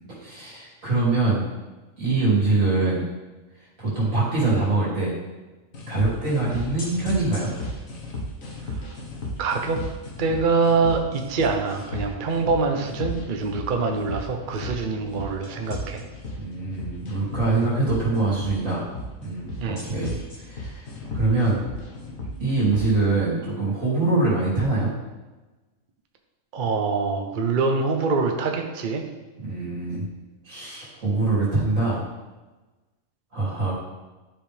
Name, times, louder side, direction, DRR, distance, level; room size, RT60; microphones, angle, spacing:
voice 1, 0.2-1.5 2.0-3.0 3.8-5.1 5.9-7.5 16.4-18.8 19.2-20.8 21.1-21.6 22.4-24.9 29.4-30.1 30.4-32.0 33.3-33.7, right 3 dB, 75° right, -7 dB, 3.2 m, -24 dB
sound 1, 5.7-22.9, left 1 dB, 75° left, 1.7 m, -35 dB
voice 2, 9.4-9.8 10.2-16.0 19.6-19.8 26.5-29.0, right 4 dB, 45° right, 4 dB, 0.9 m, -24 dB
11.5 x 5.2 x 3.4 m, 1.2 s
omnidirectional pair, 1.4 m